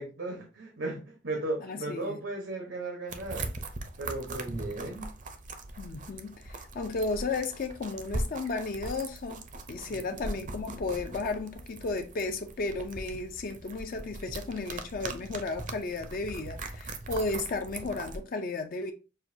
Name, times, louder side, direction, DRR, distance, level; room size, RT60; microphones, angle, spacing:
voice 1, 0.0-3.5 4.0-5.1 9.9-10.0, right 2 dB, 80° right, 1.0 m, -36 dB
voice 2, 1.7-2.2 5.8-9.4 9.7-18.9, left 3 dB, 45° left, 0.4 m, -34 dB
sound 1, 3.1-18.2, right 2 dB, 45° right, 0.6 m, -40 dB
6.1 x 2.5 x 2.6 m
head